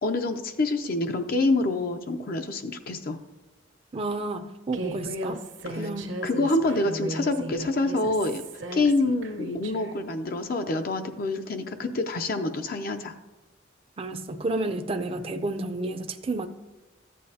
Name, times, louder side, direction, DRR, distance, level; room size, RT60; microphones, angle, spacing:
voice 1, 0.0-3.2 6.2-8.4 8.7-13.1, left 2 dB, 50° left, 6 dB, 0.5 m, -26 dB
voice 2, 3.9-5.4 5.7-6.2 14.0-16.5, right 2 dB, 30° right, 7 dB, 0.5 m, -31 dB
Human voice, 4.7-9.9, right 1 dB, 75° right, 1.1 m, -36 dB
13.5 x 8.5 x 2.8 m, 1.1 s
head